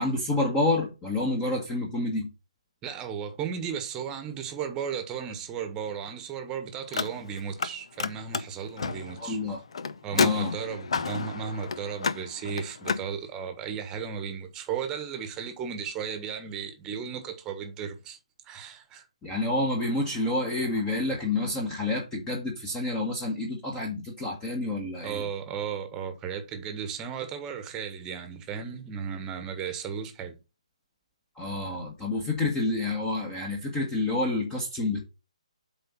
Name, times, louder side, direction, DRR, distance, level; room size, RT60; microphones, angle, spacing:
voice 1, 0.0-2.3 9.2-9.6 10.1-10.6 19.2-25.3 31.4-35.0, left 2 dB, 15° left, 1.4 m, -28 dB
voice 2, 2.8-9.4 10.0-18.2 18.4-19.0 25.0-30.4, right 7 dB, 15° right, 1.3 m, -35 dB
Car, 6.8-7.7 8.0-13.1, left 5 dB, 55° left, 0.7 m, -31 dB
8.0 x 3.9 x 5.7 m
figure-of-eight pair, 140°, 4 cm